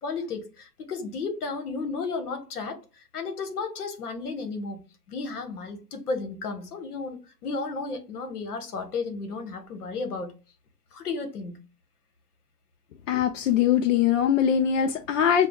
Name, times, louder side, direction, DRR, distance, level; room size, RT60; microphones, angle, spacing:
voice 1, 0.0-4.8 5.1-10.3 10.9-11.6, left 4 dB, 70° left, 1.3 m, -33 dB
voice 2, 13.1-15.5, left 9 dB, 55° left, 0.5 m, -22 dB
6.6 x 2.3 x 2.3 m
hypercardioid pair, 125°, 47 cm